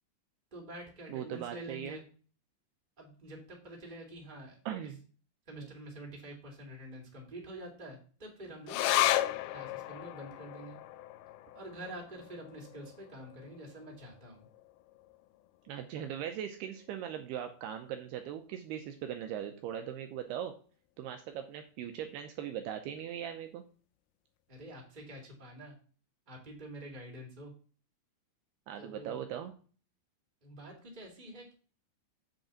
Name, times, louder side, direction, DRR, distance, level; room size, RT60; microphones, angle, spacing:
voice 1, 0.5-2.0 3.0-4.9 5.5-8.8 9.5-10.8 11.5-14.5 24.5-25.7 26.3-27.5 28.8-29.2 30.4-31.5, right 1 dB, 15° right, 0 dB, 2.2 m, -47 dB
voice 2, 1.1-2.0 4.7-5.0 5.5-5.7 15.7-20.5 21.0-23.6 28.7-29.5, right 9 dB, 80° right, 6 dB, 2.6 m, -39 dB
sound 1, 8.7-15.4 15.8-15.9 16.2-16.9 17.4-17.5, left 14 dB, 90° left, 2.2 m, -35 dB
7.6 x 5.3 x 7.1 m, 0.40 s
omnidirectional pair, 5.1 m